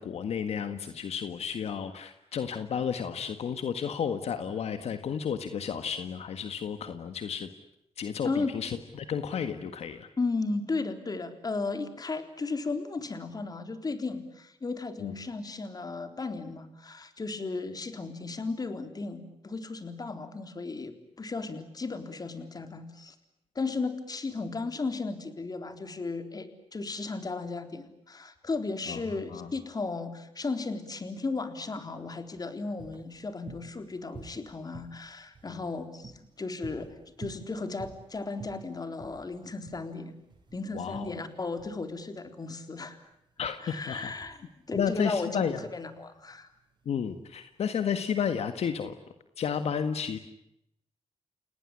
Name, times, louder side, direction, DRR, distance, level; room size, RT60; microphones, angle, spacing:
voice 1, 0.0-7.5 8.0-10.1 15.0-15.1 28.9-29.0 29.3-29.5 40.7-41.2 43.4-44.1 44.7-45.6 46.8-48.9 49.4-50.2, left 7 dB, 70° left, 9 dB, 1.7 m, -32 dB
voice 2, 10.2-23.2 23.6-40.2 40.5-43.0 43.6-44.4 44.7-46.5, left 3 dB, 35° left, 8 dB, 3.7 m, -35 dB
sound 1, 31.9-47.6, right 4 dB, 45° right, 7.9 m, -50 dB
30.0 x 18.5 x 10.0 m, 0.81 s
cardioid pair, 70°, 11 cm